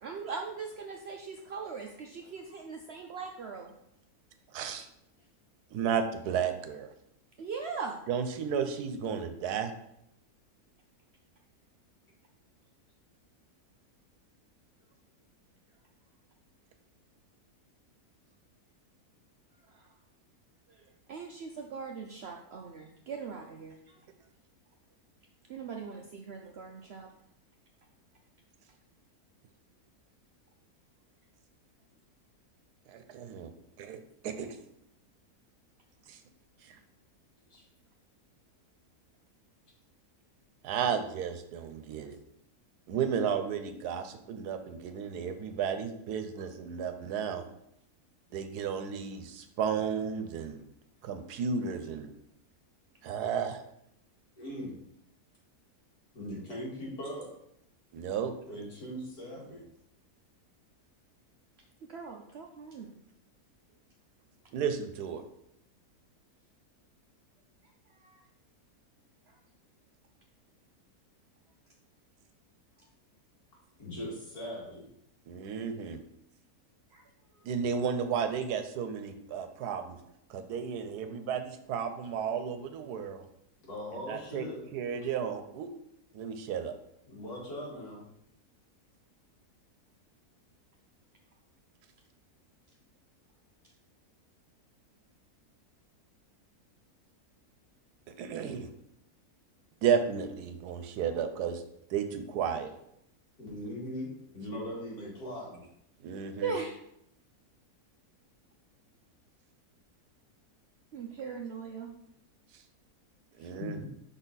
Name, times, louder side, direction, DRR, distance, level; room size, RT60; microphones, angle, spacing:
voice 1, 0.0-3.7 7.4-8.0 19.7-19.9 20.7-24.0 25.5-27.1 61.9-62.9 67.9-68.2 69.3-69.4 76.9-77.0 77.3-77.5 106.4-106.8 110.9-111.9, right 5 dB, 70° right, 2 dB, 0.6 m, -40 dB
voice 2, 5.7-6.9 8.1-9.7 32.9-33.5 33.8-34.6 36.1-36.2 36.6-36.8 40.6-42.2 42.9-47.4 48.3-50.6 51.0-52.1 53.0-53.6 57.9-58.3 64.5-65.2 75.3-76.0 77.4-80.0 80.3-83.2 83.9-84.5 84.7-85.7 86.1-86.7 98.2-98.7 99.8-101.6 101.9-102.7 106.0-106.5 113.4-113.9, right 7 dB, 85° right, 8 dB, 1.2 m, -33 dB
voice 3, 54.4-54.7 56.1-57.3 58.5-59.6 73.8-74.8 83.6-84.6 87.1-88.0 103.4-105.6 113.4-113.9, left 1 dB, 80° left, -4 dB, 2.5 m, -40 dB
5.9 x 4.0 x 4.0 m, 0.77 s
omnidirectional pair, 1.6 m